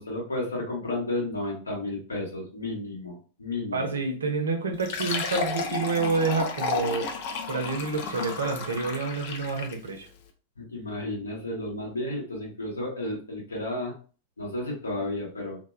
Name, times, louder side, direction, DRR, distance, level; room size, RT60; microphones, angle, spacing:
voice 1, 0.0-4.0 10.6-13.9 14.4-15.6, left 2 dB, 75° left, -2 dB, 0.9 m, -32 dB
voice 2, 3.7-7.1 7.5-10.1, right 4 dB, 70° right, 3 dB, 0.6 m, -28 dB
Fill (with liquid), 4.7-9.9, left 4 dB, 50° left, 0.4 m, -32 dB
2.2 x 2.1 x 3.0 m, 0.38 s
figure-of-eight pair, 90°, 0 cm